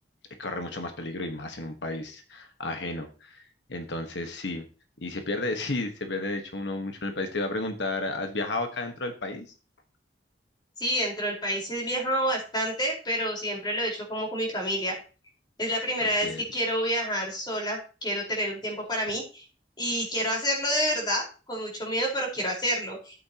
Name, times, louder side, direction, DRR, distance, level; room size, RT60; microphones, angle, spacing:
voice 1, 0.4-3.4 3.7-4.6 5.0-9.5 16.0-16.4, left 2 dB, 85° left, 6 dB, 1.3 m, -32 dB
voice 2, 10.8-14.9 15.6-19.4 19.8-23.2, equal, 25° left, -1 dB, 4.4 m, -28 dB
12.5 x 8.7 x 2.9 m, 0.35 s
head